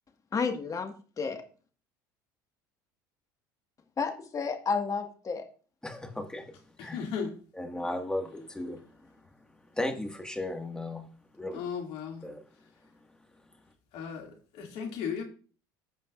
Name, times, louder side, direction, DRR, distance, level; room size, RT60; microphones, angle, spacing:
voice 1, 0.3-1.4 4.0-5.5, left 5 dB, 30° left, 1.7 m, -31 dB
voice 2, 5.8-6.5 6.8-7.0 7.5-9.1 9.7-11.1 11.3-11.6 12.2-12.4, left 1 dB, 5° left, 1.9 m, -35 dB
voice 3, 6.8-7.3 11.5-12.2 13.9-15.2, left 6 dB, 65° left, 2.6 m, -36 dB
15.0 x 5.2 x 2.6 m
hypercardioid pair, 75°, 11 cm